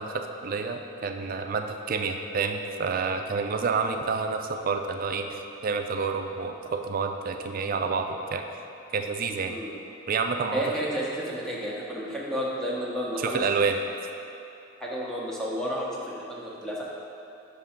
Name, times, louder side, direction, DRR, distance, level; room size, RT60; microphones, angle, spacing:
voice 1, 0.0-8.4 8.9-9.6 10.1-10.6 13.2-13.8, right 5 dB, 45° right, 5 dB, 0.4 m, -29 dB
voice 2, 10.5-13.4 14.8-16.8, equal, 5° left, -6 dB, 0.8 m, -31 dB
5.4 x 3.8 x 5.7 m, 2.8 s
head